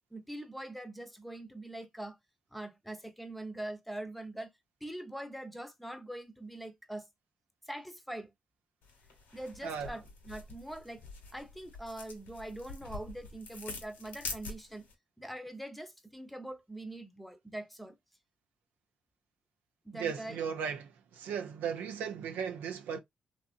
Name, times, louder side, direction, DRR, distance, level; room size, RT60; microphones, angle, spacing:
voice 1, 0.1-2.2 2.5-4.5 4.8-7.1 7.7-8.3 9.3-11.0 11.3-14.9 15.2-18.0 19.8-20.4, right 1 dB, ahead, 0.7 m, -43 dB
sound 1, 8.8-14.9, left 3 dB, 90° left, 1.0 m, -46 dB
voice 2, 19.9-23.0, right 7 dB, 85° right, 0.4 m, -36 dB
2.8 x 2.4 x 2.4 m
supercardioid pair, 50°, 3 cm